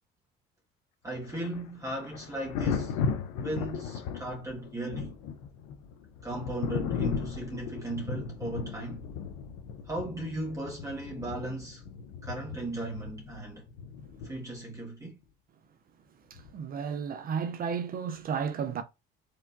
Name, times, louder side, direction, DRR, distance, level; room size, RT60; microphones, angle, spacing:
voice 1, 1.0-3.0 3.4-5.1 6.2-9.1 9.9-11.8 12.2-13.6 14.2-15.2, right 1 dB, 15° right, 1.7 m, -37 dB
Thunder, 1.1-14.7 16.4-16.6, left 6 dB, 90° left, 0.8 m, -36 dB
voice 2, 16.5-18.8, right 6 dB, 45° right, 0.6 m, -32 dB
4.8 x 3.5 x 2.7 m
supercardioid pair, 90°, 20 cm